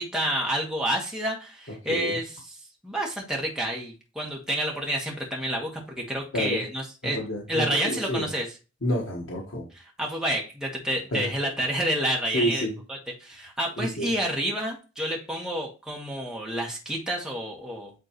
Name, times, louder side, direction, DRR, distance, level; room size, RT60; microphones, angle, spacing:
voice 1, 0.0-2.6 2.8-5.7 6.0-7.2 7.5-8.5 10.0-17.9, right 1 dB, 5° right, -2 dB, 1.5 m, -29 dB
voice 2, 7.1-8.3 8.8-9.6 11.1-11.3 12.3-12.8 13.8-14.1, equal, 85° left, -3 dB, 1.5 m, -29 dB
9.2 x 3.7 x 3.1 m, 0.31 s
head